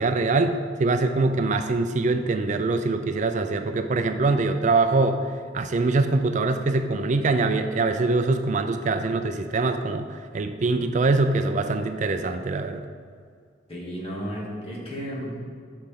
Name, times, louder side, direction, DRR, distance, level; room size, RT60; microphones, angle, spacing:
voice 1, 0.0-5.2 5.5-12.8, right 3 dB, 40° right, 7 dB, 0.4 m, -23 dB
voice 2, 13.7-15.4, equal, 30° left, -5 dB, 2.4 m, -33 dB
13.5 x 6.4 x 3.7 m, 2.1 s
head